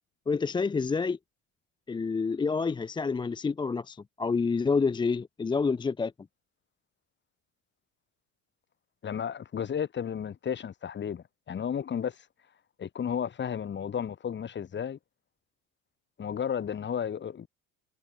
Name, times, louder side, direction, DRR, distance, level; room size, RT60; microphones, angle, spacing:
voice 1, 0.3-1.2 1.9-6.1, left 4 dB, 15° left, 0.5 m, -28 dB
voice 2, 9.0-12.2 12.8-15.0 16.2-17.5, left 8 dB, 30° left, 1.9 m, -33 dB
supercardioid pair, 100°, 34 cm